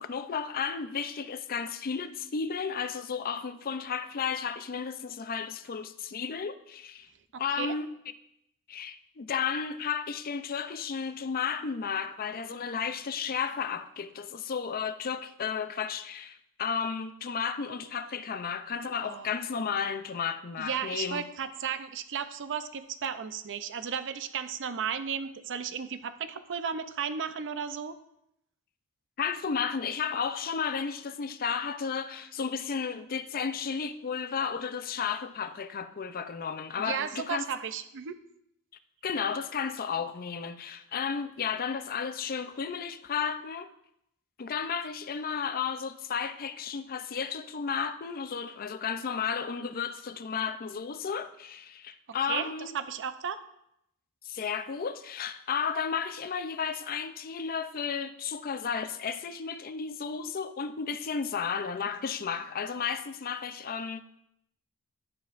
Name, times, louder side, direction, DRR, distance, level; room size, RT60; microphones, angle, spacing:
voice 1, 0.0-7.1 7.4-7.9 8.7-21.2 29.2-37.4 39.0-43.7 44.4-52.8 54.2-64.0, left 6 dB, 40° left, 0.5 m, -33 dB
voice 2, 7.3-7.7 19.0-19.3 20.6-28.0 36.8-38.2 52.3-53.4, right 7 dB, 55° right, 0.5 m, -34 dB
11.5 x 7.0 x 2.5 m
head